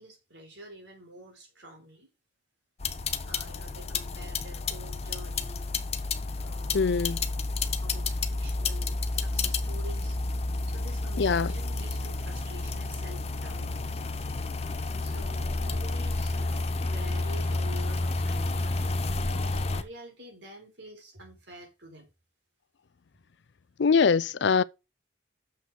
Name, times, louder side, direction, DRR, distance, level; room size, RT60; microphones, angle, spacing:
voice 1, 0.0-2.1 3.2-5.7 6.4-7.2 7.8-10.2 10.7-13.7 15.0-22.1, equal, 65° right, 3.9 m, -48 dB
sound 1, 2.8-19.8, left 3 dB, 30° left, 0.7 m, -30 dB
voice 2, 6.7-7.2 11.2-11.5 23.8-24.6, left 5 dB, 65° left, 0.4 m, -23 dB
6.9 x 6.2 x 6.3 m
head